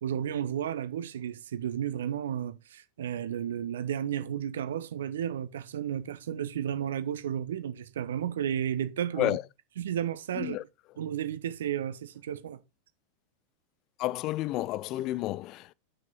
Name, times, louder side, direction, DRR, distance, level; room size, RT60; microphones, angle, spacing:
voice 1, 0.0-9.4 9.8-10.6 11.0-12.6, right 9 dB, 60° right, 0.9 m, -33 dB
voice 2, 14.0-15.7, left 16 dB, 40° left, 0.4 m, -31 dB
6.9 x 6.0 x 5.6 m
figure-of-eight pair, 90°, 0 cm